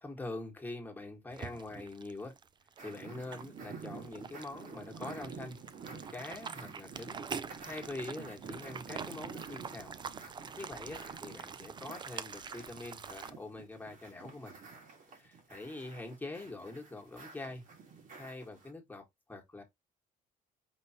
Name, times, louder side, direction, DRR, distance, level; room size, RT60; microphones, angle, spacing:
voice 1, 0.0-2.4 2.8-5.6 6.1-7.2 7.6-10.0 10.3-14.6 15.5-17.6 18.2-19.0 19.3-19.6, left 2 dB, 10° left, 1.6 m, -44 dB
sound 1, 1.3-13.3, right 6 dB, 25° right, 0.4 m, -45 dB
sound 2, 2.8-18.7, right 5 dB, 50° right, 1.7 m, -50 dB
5.4 x 3.0 x 2.9 m
cardioid pair, 110°, 17 cm